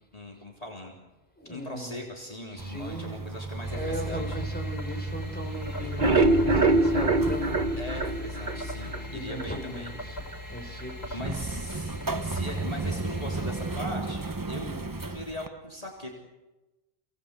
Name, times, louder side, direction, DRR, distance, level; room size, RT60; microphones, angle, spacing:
voice 1, 0.1-1.1 1.5-4.4 7.8-9.9 11.1-16.1, left 1 dB, 35° left, -1 dB, 3.6 m, -40 dB
voice 2, 1.4-2.0 2.5-3.3 3.7-7.7 8.8-10.2 10.5-11.4 14.5-14.8, equal, 10° left, 2 dB, 4.8 m, -38 dB
sound 1, 2.6-15.5, right 3 dB, 20° right, 0.9 m, -35 dB
sound 2, 3.6-13.8, left 1 dB, 80° left, 5.0 m, -40 dB
sound 3, 5.8-9.0 9.4-9.5 9.9-10.0 10.3-10.4, right 2 dB, 50° right, 1.7 m, -23 dB
28.5 x 19.0 x 8.2 m, 1.1 s
omnidirectional pair, 1.0 m